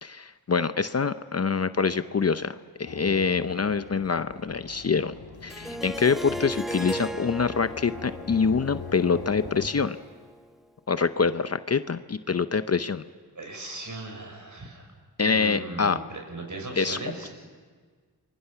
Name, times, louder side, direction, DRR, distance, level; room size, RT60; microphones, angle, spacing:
voice 1, 0.0-5.1 5.4-10.0 10.9-13.0 15.2-16.0 16.8-17.0, left 5 dB, 40° left, 12 dB, 0.7 m, -25 dB
sound 1, 2.8-9.7, left 5 dB, 65° left, 1.8 m, -42 dB
Harp, 5.5-10.4, equal, ahead, 0.9 m, -37 dB
voice 2, 6.7-7.1 13.4-14.9 15.2-17.3, right 2 dB, 50° right, 3 dB, 6.4 m, -38 dB
27.5 x 23.0 x 5.8 m, 1.5 s
cardioid pair, 65°, 39 cm